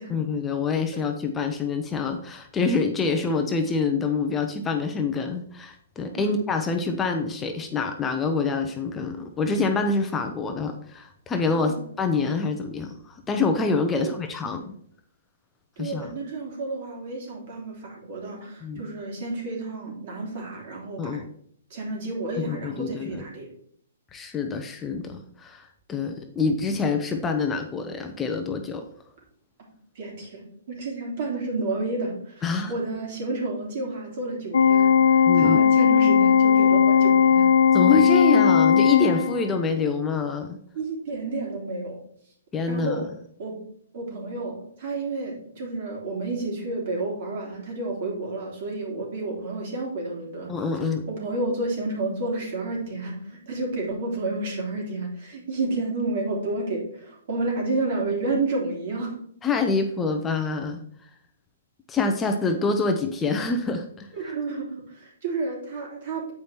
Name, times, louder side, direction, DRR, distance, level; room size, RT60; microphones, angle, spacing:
voice 1, 0.1-14.7 15.8-16.1 18.6-18.8 21.0-21.3 22.4-23.2 24.1-28.8 32.4-32.7 35.3-35.6 37.7-40.6 42.5-43.0 50.5-51.0 59.4-60.8 61.9-64.1, left 4 dB, 15° left, 5 dB, 0.7 m, -26 dB
voice 2, 15.8-21.2 21.7-23.5 29.9-37.5 40.7-42.0 42.7-43.0 43.4-43.6 43.9-50.5 51.1-59.1 64.2-66.3, right 2 dB, 55° right, -2 dB, 3.3 m, -30 dB
Organ, 34.5-39.6, left 7 dB, 80° left, 1.1 m, -18 dB
8.2 x 5.1 x 4.5 m, 0.65 s
hypercardioid pair, 140°, 0 cm